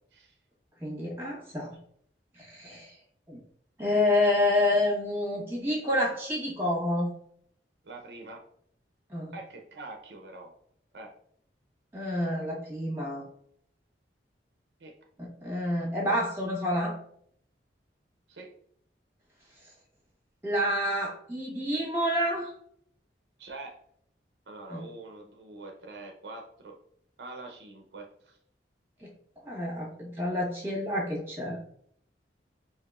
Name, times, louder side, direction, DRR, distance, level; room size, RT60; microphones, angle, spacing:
voice 1, 0.8-1.8 2.4-2.9 3.3-3.4 3.8-7.1 9.1-9.3 11.9-13.2 15.2-17.0 20.4-22.5 24.7-24.8 29.0-29.1 29.4-31.7, left 1 dB, 15° right, -3 dB, 1.2 m, -28 dB
voice 2, 7.8-8.4 9.3-10.5 10.9-11.1 14.8-14.9 18.3-18.5 23.4-23.7 24.5-26.8 27.2-28.3, right 2 dB, 75° right, 2 dB, 0.6 m, -44 dB
4.7 x 2.9 x 2.4 m, 0.65 s
head